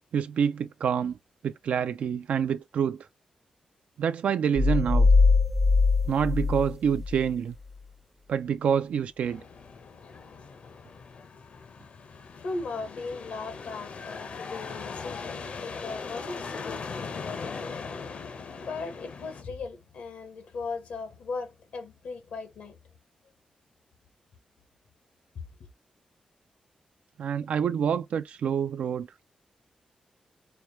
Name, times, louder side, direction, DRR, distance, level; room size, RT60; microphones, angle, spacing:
voice 1, 0.1-1.2 1.4-3.0 4.0-5.1 6.1-7.5 8.3-9.4 27.2-29.1, right 7 dB, 75° right, 0.3 m, -27 dB
sound 1, 4.6-7.3, left 4 dB, ahead, 0.5 m, -22 dB
sound 2, 9.2-19.4, left 5 dB, 65° left, 0.8 m, -40 dB
voice 2, 12.1-22.8, left 4 dB, 80° left, 1.3 m, -38 dB
4.4 x 2.3 x 3.1 m
cardioid pair, 75°, 2 cm